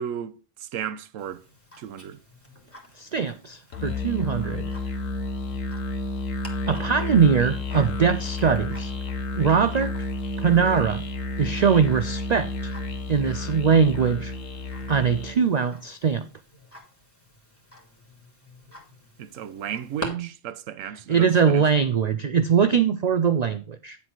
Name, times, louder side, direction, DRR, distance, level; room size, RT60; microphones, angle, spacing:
voice 1, 0.0-1.4 1.8-2.2 19.2-21.6, right 9 dB, 85° right, 1.0 m, -34 dB
Tick-tock, 1.2-20.1, left 1 dB, 10° left, 2.2 m, -47 dB
voice 2, 3.0-4.7 6.7-8.9 9.4-9.9 10.4-11.0 11.4-12.7 13.1-14.3 14.9-16.3 21.1-24.0, right 6 dB, 65° right, 0.4 m, -21 dB
Musical instrument, 3.7-15.5, left 2 dB, 85° left, 1.4 m, -31 dB
9.8 x 4.0 x 5.9 m
omnidirectional pair, 1.3 m